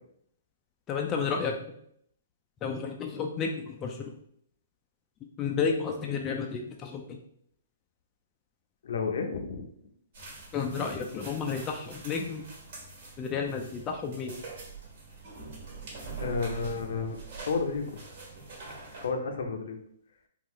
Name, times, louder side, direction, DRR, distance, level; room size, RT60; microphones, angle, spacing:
voice 1, 0.9-1.6 2.6-4.1 5.4-7.2 10.5-12.4 13.2-14.4, left 5 dB, 20° left, 1 dB, 0.4 m, -31 dB
voice 2, 8.8-9.7 16.2-17.8 19.0-19.8, left 4 dB, 70° left, 5 dB, 0.6 m, -31 dB
sound 1, 10.1-19.1, right 4 dB, 55° right, 1.4 m, -44 dB
3.8 x 2.4 x 3.0 m, 0.68 s
hypercardioid pair, 150°, 0 cm